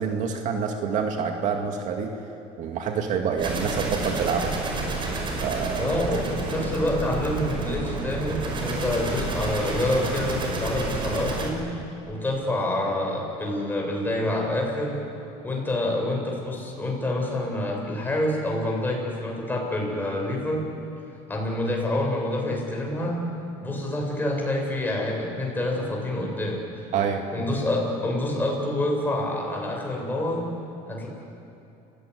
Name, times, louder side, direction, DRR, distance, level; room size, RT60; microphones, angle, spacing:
voice 1, 0.0-2.1 2.6-4.6 5.4-5.9 26.9-27.2, right 6 dB, 55° right, 3 dB, 2.2 m, -27 dB
sound 1, 3.4-11.5, right 3 dB, 30° right, 5.5 m, -30 dB
voice 2, 5.8-11.6 12.1-14.9 15.4-20.6 21.3-23.2 23.6-26.6 27.3-30.4 30.9-31.1, left 1 dB, 10° left, -1 dB, 7.6 m, -27 dB
30.0 x 17.0 x 9.7 m, 2.8 s
supercardioid pair, 120°, 16 cm